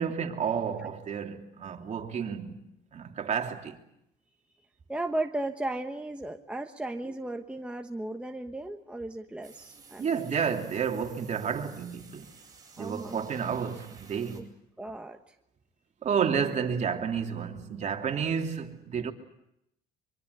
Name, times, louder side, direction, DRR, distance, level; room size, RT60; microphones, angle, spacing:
voice 1, 0.0-2.6 2.9-3.8 10.0-12.3 12.8-14.5 16.0-19.1, right 7 dB, 45° right, 3.0 m, -31 dB
voice 2, 4.9-10.2 12.8-13.3 14.3-14.4 14.8-15.4, right 2 dB, 5° right, 1.2 m, -35 dB
sound 1, 9.4-14.4, right 4 dB, 20° right, 7.9 m, -54 dB
24.0 x 23.5 x 8.2 m
cardioid pair, 110°, 17 cm